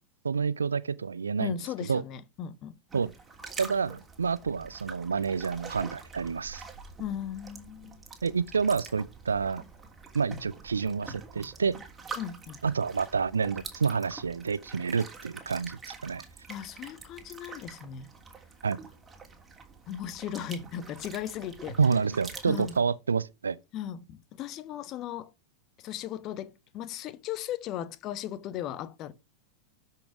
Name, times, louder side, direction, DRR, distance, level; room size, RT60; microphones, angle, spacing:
voice 1, 0.2-1.6 1.9-2.0 2.9-3.1 3.6-6.6 8.2-9.6 10.1-11.8 12.6-16.2 18.6-18.8 21.8-23.6, right 5 dB, 75° right, 0.5 m, -28 dB
voice 2, 1.4-2.8 7.0-8.1 12.2-12.6 16.5-18.1 19.9-21.8 22.4-22.8 23.7-25.3 25.8-29.1, left 10 dB, 35° left, 1.0 m, -37 dB
sound 1, 2.9-22.8, right 4 dB, 15° right, 3.0 m, -45 dB
13.0 x 5.8 x 4.8 m
figure-of-eight pair, 90°, 0 cm